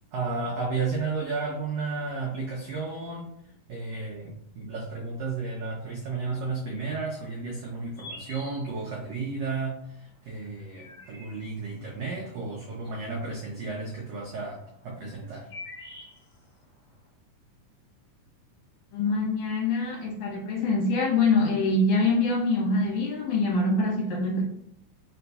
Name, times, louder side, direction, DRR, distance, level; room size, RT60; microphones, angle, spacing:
voice 1, 0.1-3.2 3.7-15.5, right 4 dB, 85° right, -2 dB, 1.4 m, -33 dB
sound 1, 7.7-9.1 10.4-11.8 12.9-13.7 14.7-16.7, left 2 dB, 50° left, 1.5 m, -45 dB
voice 2, 18.9-24.4, left 2 dB, 70° left, -3 dB, 2.1 m, -24 dB
4.9 x 3.9 x 2.3 m, 0.71 s
omnidirectional pair, 3.9 m